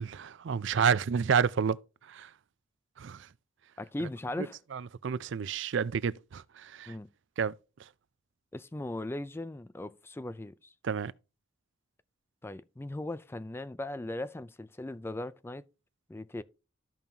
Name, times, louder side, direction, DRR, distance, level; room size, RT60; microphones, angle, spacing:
voice 1, 0.0-1.8 2.1-2.3 3.0-3.3 4.7-6.9 7.4-7.5 10.8-11.1, right 6 dB, 60° right, 0.4 m, -29 dB
voice 2, 3.8-4.6 6.9-7.1 8.5-10.7 12.4-15.6 16.1-16.4, left 1 dB, 10° left, 0.3 m, -38 dB
13.5 x 5.3 x 2.8 m
head